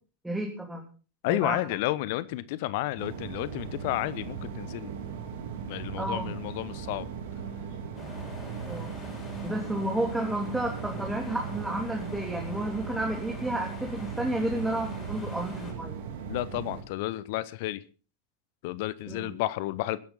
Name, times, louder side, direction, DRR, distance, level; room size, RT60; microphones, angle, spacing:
voice 1, 0.2-0.8 1.3-1.6 6.0-6.3 8.6-8.9 9.4-16.0 19.1-19.3, right 1 dB, 5° right, 0 dB, 3.3 m, -31 dB
voice 2, 1.2-4.9 5.7-7.1 16.3-17.8 18.6-20.0, left 16 dB, 50° left, 17 dB, 0.9 m, -31 dB
sound 1, 3.0-16.8, right 7 dB, 55° right, 2.7 m, -38 dB
sound 2, 7.9-15.7, left 3 dB, 25° left, 6.8 m, -45 dB
21.5 x 10.5 x 4.1 m, 0.37 s
figure-of-eight pair, 90°, 0 cm